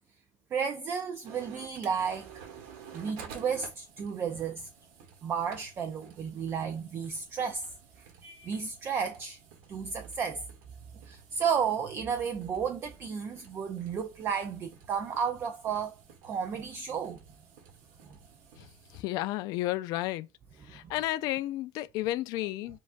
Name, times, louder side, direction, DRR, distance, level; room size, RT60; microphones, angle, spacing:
voice 1, 0.5-2.4 2.9-4.7 5.2-7.7 8.2-9.4 9.7-10.4 11.1-16.0 16.2-17.2, right 6 dB, 30° right, 0.4 m, -33 dB
sound 1, 1.2-19.0, right 6 dB, 80° right, 1.3 m, -52 dB
voice 2, 18.6-20.3 20.7-22.8, left 16 dB, 60° left, 0.4 m, -32 dB
7.2 x 2.4 x 2.5 m
cardioid pair, 155°, 8 cm